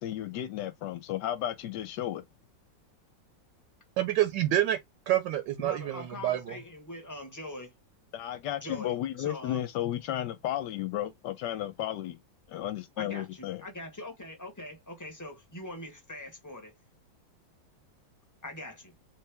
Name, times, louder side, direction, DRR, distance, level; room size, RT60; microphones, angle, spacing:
voice 1, 0.0-2.2 8.1-12.2 12.5-13.6, left 12 dB, 75° left, 1.1 m, -33 dB
voice 2, 4.0-4.8 5.1-6.6, right 13 dB, 80° right, 1.3 m, -27 dB
voice 3, 5.6-7.7 8.6-9.7 13.0-16.7 18.4-18.9, left 1 dB, 15° left, 0.7 m, -42 dB
3.3 x 3.2 x 3.3 m
omnidirectional pair, 2.0 m